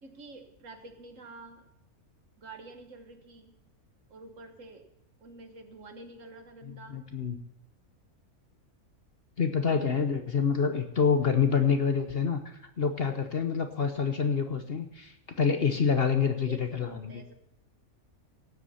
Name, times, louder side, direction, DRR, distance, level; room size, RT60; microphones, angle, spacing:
voice 1, 0.0-1.6 2.4-3.5 4.1-4.8 5.2-7.0 9.8-9.9 16.4-17.3, right 3 dB, 60° right, 6 dB, 1.7 m, -48 dB
voice 2, 6.7-7.4 9.4-17.2, left 6 dB, 45° left, 7 dB, 1.0 m, -27 dB
17.0 x 8.0 x 5.7 m, 0.78 s
omnidirectional pair, 1.6 m